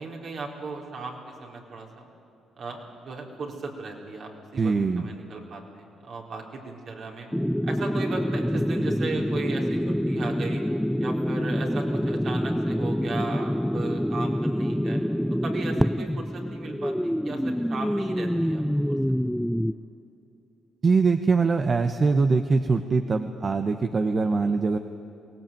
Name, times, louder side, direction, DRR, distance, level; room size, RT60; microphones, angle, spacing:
voice 1, 0.0-2.1 2.6-7.3 7.6-10.6 11.0-15.0 15.4-18.6 18.9-19.0, right 3 dB, 60° right, 0 dB, 4.4 m, -36 dB
voice 2, 4.6-5.1 20.8-24.8, right 4 dB, 45° right, 7 dB, 1.1 m, -22 dB
sound 1, 7.3-19.7, equal, ahead, 0.5 m, -26 dB
23.0 x 18.5 x 9.2 m, 2.7 s
supercardioid pair, 65°, 0 cm